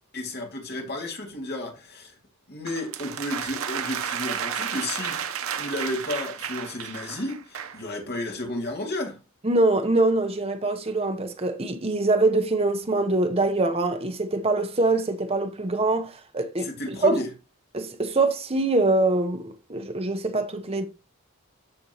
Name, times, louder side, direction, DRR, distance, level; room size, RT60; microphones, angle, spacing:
voice 1, 0.1-2.1 2.5-9.2 16.6-17.3, left 1 dB, 50° left, 2.3 m, -32 dB
sound 1, 2.7-7.8, right 8 dB, 85° right, 0.8 m, -32 dB
voice 2, 9.4-17.2 17.7-20.9, right 2 dB, 30° right, 0.8 m, -24 dB
13.0 x 4.4 x 2.9 m
head